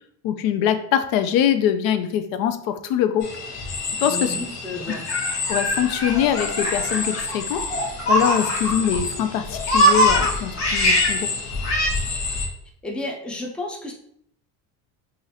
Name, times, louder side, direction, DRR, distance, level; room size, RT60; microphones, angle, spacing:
voice 1, 0.2-3.3 4.0-4.4 5.5-7.7 8.1-11.3, left 9 dB, 90° left, 9 dB, 0.5 m, -23 dB
sound 1, 3.2-12.5, left 4 dB, 70° left, 1.1 m, -29 dB
voice 2, 4.1-5.0 12.8-13.9, left 2 dB, 5° left, 1 dB, 0.3 m, -32 dB
Laughter, 4.9-9.0 9.3-11.2 11.6-11.9, equal, 40° left, 1.4 m, -22 dB
4.9 x 2.5 x 2.7 m, 0.68 s
cardioid pair, 150°, 34 cm